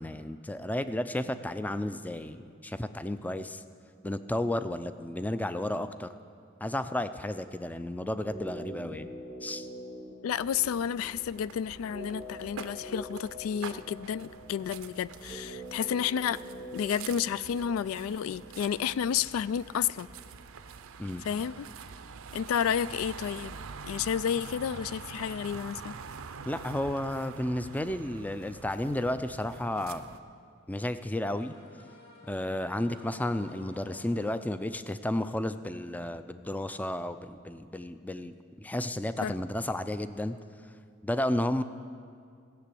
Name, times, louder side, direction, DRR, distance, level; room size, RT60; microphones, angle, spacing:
voice 1, 0.0-3.6 4.0-6.1 6.6-9.1 9.4-9.7 21.0-21.2 26.4-30.0 30.7-31.5 32.3-40.4 41.0-41.6, left 1 dB, 10° left, 11 dB, 0.4 m, -32 dB
sound 1, 8.1-20.3 20.5-20.6, equal, 35° left, 2.7 m, -45 dB
voice 2, 10.2-16.4 16.7-20.1 21.2-21.7 22.3-23.6 23.8-26.0 39.2-39.3, left 8 dB, 90° left, 19 dB, 0.3 m, -31 dB
sound 2, 10.3-30.2, right 5 dB, 85° right, 0.6 m, -46 dB
sound 3, 31.0-34.3, left 1 dB, 50° left, 2.6 m, -55 dB
16.0 x 6.9 x 8.3 m, 2.3 s
head